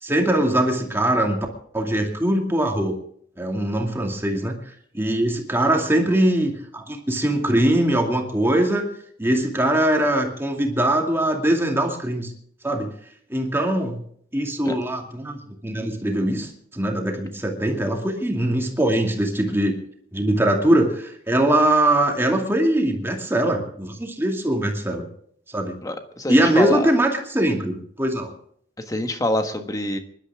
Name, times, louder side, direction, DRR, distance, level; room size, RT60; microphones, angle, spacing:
voice 1, 0.0-1.5 1.7-3.0 3.4-8.9 9.2-12.3 12.6-12.9 13.3-14.0 14.3-19.8 20.1-25.1 25.5-25.7 26.3-28.3, right 1 dB, 15° right, 2 dB, 2.4 m, -22 dB
voice 2, 25.8-26.9 28.9-30.0, left 1 dB, 20° left, 7 dB, 1.4 m, -25 dB
25.0 x 12.0 x 3.6 m, 0.64 s
head